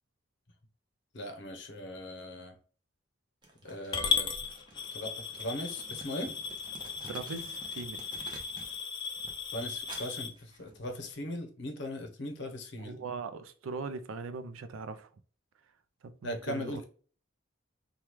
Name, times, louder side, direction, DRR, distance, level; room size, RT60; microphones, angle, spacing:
voice 1, 1.1-2.5 3.6-4.3 4.9-6.3 9.5-13.0 16.2-16.8, left 1 dB, 55° left, 0.7 m, -39 dB
Crumpling crinkling, 3.4-8.8 9.1-11.1, right 2 dB, 20° right, 0.6 m, -51 dB
Coin (dropping) / Glass, 3.9-10.3, left 5 dB, 20° left, 0.3 m, -36 dB
voice 2, 7.1-8.0 12.8-15.1 16.0-16.8, right 4 dB, 80° right, 0.4 m, -40 dB
3.0 x 2.3 x 3.3 m
head